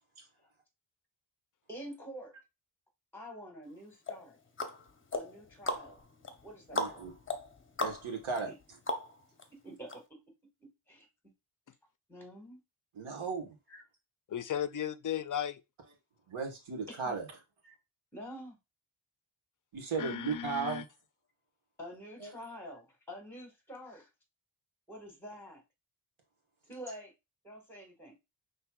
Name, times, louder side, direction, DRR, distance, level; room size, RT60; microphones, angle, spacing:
voice 1, 1.7-2.3 3.1-4.4 5.1-6.0 6.4-7.1 8.4-8.5 9.5-10.2 10.6-11.1 12.1-12.6 13.7-13.8 16.9-17.1 17.6-17.8 18.1-18.6 21.8-24.1 24.9-25.6 26.7-27.1 27.4-28.1, equal, 5° left, 1.6 m, -47 dB
sound 1, 4.1-9.4 9.9-10.0, left 2 dB, 25° left, 0.8 m, -38 dB
voice 2, 6.7-7.1 7.8-8.5 12.9-13.5 16.3-17.3 19.7-20.8 22.2-22.3, right 5 dB, 75° right, 1.4 m, -36 dB
voice 3, 14.3-15.6 20.0-20.8, left 9 dB, 45° left, 0.4 m, -35 dB
5.9 x 3.3 x 2.3 m
wide cardioid pair, 90°, 48 cm